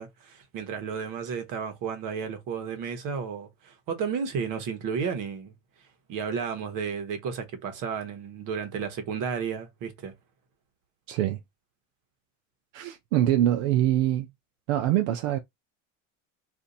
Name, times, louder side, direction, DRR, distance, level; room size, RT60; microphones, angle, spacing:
voice 1, 0.0-5.5 6.1-10.1, right 6 dB, 55° right, 1.3 m, -32 dB
voice 2, 11.1-11.4 12.7-14.3 14.7-15.4, right 12 dB, 85° right, 0.6 m, -24 dB
2.7 x 2.5 x 4.0 m
supercardioid pair, 110°, 37 cm